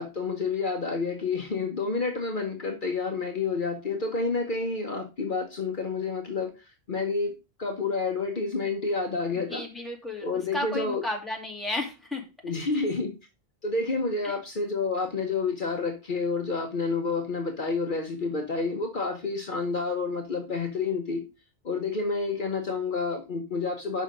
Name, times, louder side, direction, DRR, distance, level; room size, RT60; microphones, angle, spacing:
voice 1, 0.0-7.3 7.6-9.6 10.2-11.0 12.4-13.1 13.6-21.2 21.6-24.0, left 4 dB, 50° left, 3 dB, 1.2 m, -29 dB
voice 2, 9.5-12.2 12.7-12.8 14.2-14.3, left 1 dB, ahead, 0 dB, 2.3 m, -33 dB
6.7 x 5.6 x 5.1 m, 0.28 s
omnidirectional pair, 1.1 m